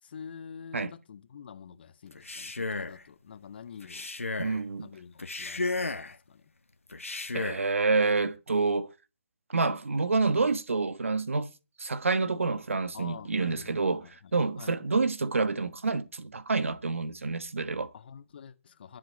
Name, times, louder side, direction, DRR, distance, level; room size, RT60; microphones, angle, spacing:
voice 1, 0.0-4.1 4.8-6.5 12.9-14.3 14.6-14.8 17.9-19.0, left 7 dB, 50° left, 1.5 m, -47 dB
Male speech man speaking, 2.1-3.0 3.8-4.6 5.2-6.2 6.9-7.7, left 3 dB, 85° left, 1.3 m, -34 dB
voice 2, 4.4-4.9 7.3-8.9 9.5-11.5 11.8-17.9, right 4 dB, 75° right, 1.3 m, -28 dB
22.5 x 7.6 x 4.2 m
figure-of-eight pair, 145°, 7 cm